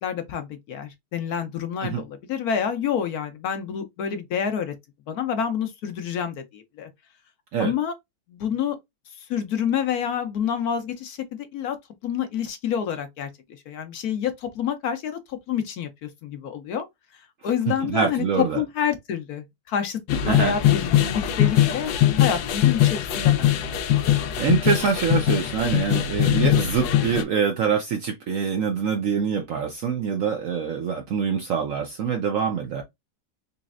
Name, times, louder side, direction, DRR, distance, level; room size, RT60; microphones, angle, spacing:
voice 1, 0.0-4.7 5.1-6.9 7.6-7.9 8.3-8.8 9.1-11.8 12.0-13.3 13.7-16.9 17.1-20.0 20.2-21.9 22.2-23.8, left 8 dB, 65° left, 1.0 m, -28 dB
voice 2, 17.7-18.6 20.3-20.6 24.4-32.8, right 6 dB, 65° right, 0.8 m, -25 dB
sound 1, 20.1-27.2, left 12 dB, 90° left, 1.3 m, -21 dB
4.1 x 3.1 x 2.4 m
omnidirectional pair, 1.9 m